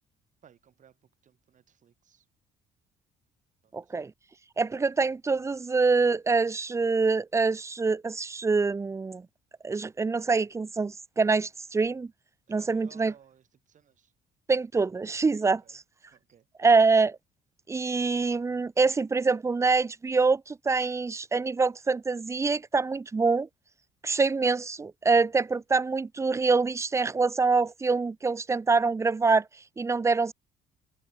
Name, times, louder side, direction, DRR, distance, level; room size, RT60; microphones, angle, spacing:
voice 1, 0.4-2.3 3.6-4.0 12.5-14.1 15.6-15.8 16.1-16.5, right 8 dB, 50° right, 5.6 m, -59 dB
voice 2, 3.7-4.1 4.6-9.3 9.6-12.1 12.5-13.1 14.5-15.6 16.6-17.2 17.7-23.5 24.0-29.5 29.8-30.3, right 4 dB, 15° right, 0.5 m, -25 dB
open air
cardioid pair, 110°, 17 cm